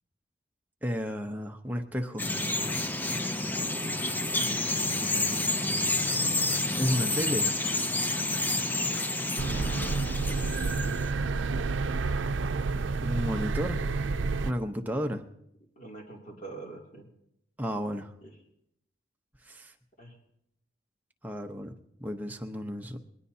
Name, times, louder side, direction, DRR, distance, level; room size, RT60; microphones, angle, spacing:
voice 1, 0.8-2.2 6.8-7.5 12.7-13.8 14.4-15.2 17.6-18.1 19.5-19.7 21.2-21.7 22.0-23.0, equal, 10° right, 3 dB, 0.9 m, -32 dB
Bird vocalization bird call bird song, 2.2-11.1, left 2 dB, 10° left, 0.5 m, -29 dB
voice 2, 6.7-7.1 9.4-9.8 10.4-11.1 15.8-17.1 18.2-18.3 20.0-20.2, right 2 dB, 40° left, 0 dB, 2.8 m, -45 dB
sound 1, 9.4-14.5, right 4 dB, 90° right, 0.5 m, -29 dB
20.5 x 19.5 x 2.8 m, 0.79 s
head